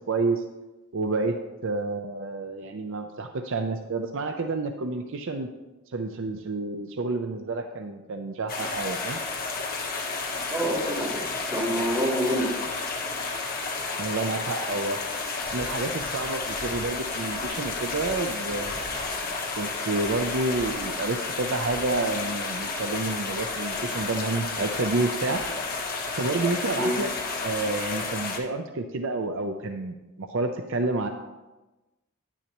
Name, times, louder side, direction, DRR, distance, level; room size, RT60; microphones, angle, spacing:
voice 1, 0.1-0.4 0.9-5.5 5.9-9.2 14.0-15.0 15.5-25.4 26.2-27.1 27.4-31.1, right 3 dB, 60° right, 5 dB, 0.6 m, -29 dB
sound 1, 8.5-28.4, left 3 dB, 40° left, 1.2 m, -31 dB
voice 2, 10.5-12.6 26.7-26.9, equal, 10° right, -8 dB, 2.9 m, -27 dB
9.9 x 9.8 x 3.0 m, 1.1 s
head